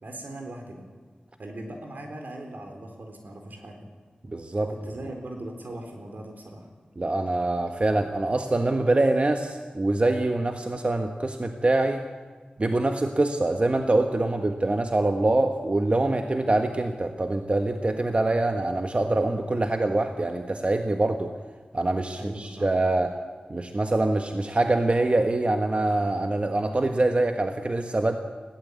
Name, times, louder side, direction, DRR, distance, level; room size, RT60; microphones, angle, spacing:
voice 1, 0.0-0.8 1.4-3.9 4.7-6.7 22.1-22.8, right 1 dB, 75° right, 3 dB, 4.1 m, -39 dB
voice 2, 4.3-4.7 7.0-12.0 12.6-21.3 21.7-23.1 23.5-28.2, right 2 dB, 40° right, 5 dB, 1.4 m, -24 dB
21.5 x 16.5 x 8.3 m, 1.4 s
wide cardioid pair, 60°, 3 cm